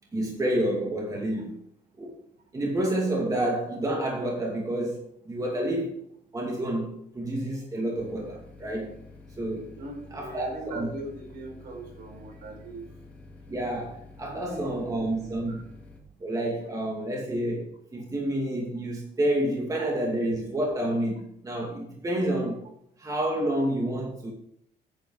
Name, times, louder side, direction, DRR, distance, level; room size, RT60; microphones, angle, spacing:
voice 1, 0.1-1.6 2.0-2.1 2.5-6.0 6.3-8.9 9.4-9.7 10.1-10.9 13.5-15.6 16.2-22.6 23.0-24.3, right 1 dB, 20° right, 2.4 m, -29 dB
sound 1, 8.0-16.0, left 3 dB, 10° left, 2.2 m, -49 dB
voice 2, 9.7-12.9 14.2-15.6 19.8-19.9, right 2 dB, 65° right, 4.7 m, -40 dB
9.5 x 8.9 x 4.9 m
cardioid pair, 140°, 17 cm